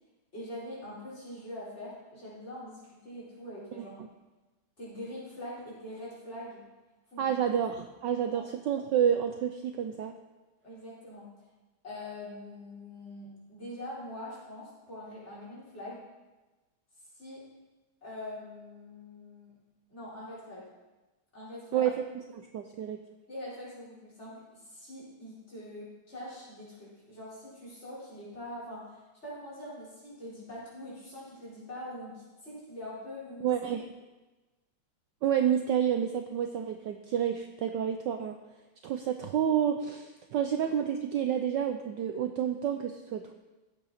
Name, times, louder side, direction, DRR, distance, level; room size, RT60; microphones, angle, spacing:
voice 1, 0.3-4.0 4.8-6.6 7.1-7.4 8.3-8.4 10.6-11.3 11.8-16.0 17.1-17.5 18.0-19.5 19.9-20.7 21.3-21.9 23.3-33.6, left 1 dB, 30° left, -7 dB, 4.7 m, -43 dB
voice 2, 7.2-10.1 21.7-22.0 22.3-23.0 33.4-33.9 35.2-38.4 38.8-43.3, right 9 dB, 70° right, 6 dB, 1.1 m, -29 dB
15.5 x 8.4 x 4.2 m, 1.1 s
omnidirectional pair, 2.4 m